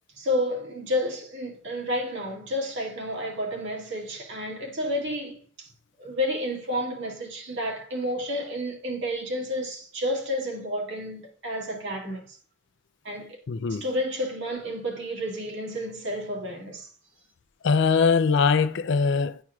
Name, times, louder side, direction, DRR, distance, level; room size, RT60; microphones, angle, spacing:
voice 1, 0.2-5.7 6.0-12.4 13.0-13.4 13.7-16.9, left 1 dB, 65° right, 2.0 m, -30 dB
voice 2, 13.5-13.8 17.6-19.4, left 5 dB, 65° left, 0.5 m, -22 dB
11.0 x 4.5 x 2.3 m
head